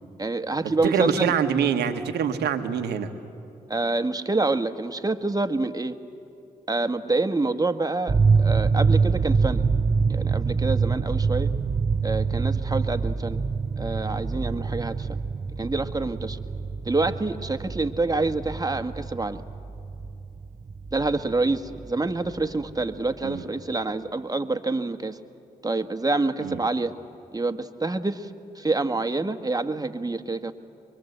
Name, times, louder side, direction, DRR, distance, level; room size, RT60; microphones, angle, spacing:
voice 1, 0.2-1.3 3.7-5.9 6.7-9.6 10.1-11.5 12.0-13.4 13.8-15.2 15.6-16.4 16.8-19.4 20.9-25.2 25.6-26.9 27.3-28.3 28.5-30.5, right 3 dB, 20° right, 8 dB, 1.6 m, -27 dB
voice 2, 0.8-3.1 23.2-23.4 26.4-26.6, right 7 dB, 80° right, 7 dB, 1.4 m, -25 dB
sound 1, 8.1-22.9, right 5 dB, 40° right, 0.8 m, -26 dB
23.5 x 23.5 x 8.1 m, 2.6 s
hypercardioid pair, 40°, 17 cm